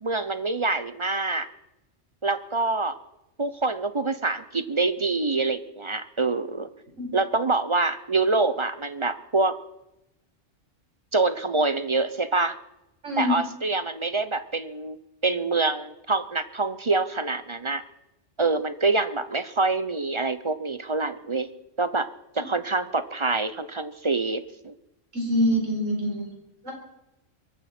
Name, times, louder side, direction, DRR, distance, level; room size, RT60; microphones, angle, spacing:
voice 1, 0.0-1.5 2.2-3.0 3.4-6.7 7.1-9.6 11.1-12.6 13.2-15.0 15.2-17.8 18.4-21.5 21.8-22.1 22.3-24.7, right 3 dB, 35° right, 13 dB, 0.5 m, -26 dB
voice 2, 13.0-13.4 25.1-26.3 26.6-26.7, equal, 85° right, 0 dB, 4.9 m, -25 dB
23.0 x 14.0 x 4.4 m, 0.89 s
omnidirectional pair, 1.3 m